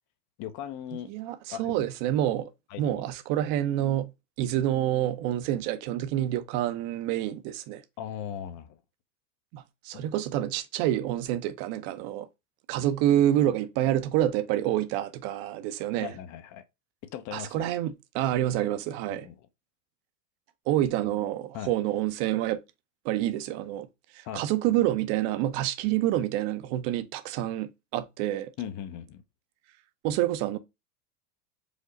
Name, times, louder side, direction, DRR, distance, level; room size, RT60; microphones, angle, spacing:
voice 1, 0.4-1.1 1.5-1.7 2.4-3.1 8.0-8.8 9.9-10.1 16.0-16.6 17.1-17.7 19.1-19.5 21.5-21.7 24.2-24.4 28.6-29.2, left 10 dB, 40° left, 0.7 m, -39 dB
voice 2, 1.1-2.5 2.8-4.1 4.4-7.8 9.5-12.3 12.7-16.1 17.3-19.3 20.7-22.6 23.0-23.9 24.1-28.5 30.0-30.6, right 12 dB, 50° right, 0.7 m, -27 dB
5.0 x 2.0 x 3.8 m
hypercardioid pair, 110°, 47 cm